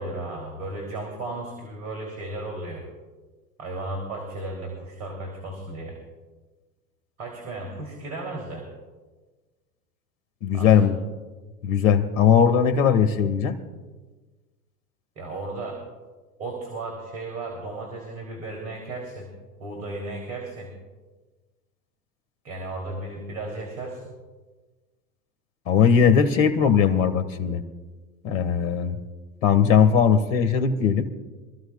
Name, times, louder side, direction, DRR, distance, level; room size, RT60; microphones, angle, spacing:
voice 1, 0.0-2.8 3.6-6.0 7.2-8.7 10.5-10.9 15.2-15.8 16.4-19.3 19.6-20.7 22.4-24.1, right 2 dB, 80° right, 1 dB, 3.3 m, -34 dB
voice 2, 10.4-11.0 11.6-13.6 25.7-27.6 28.2-29.0 29.4-31.1, left 7 dB, 65° left, 10 dB, 1.7 m, -19 dB
25.5 x 14.5 x 2.4 m, 1.3 s
hypercardioid pair, 85°, 42 cm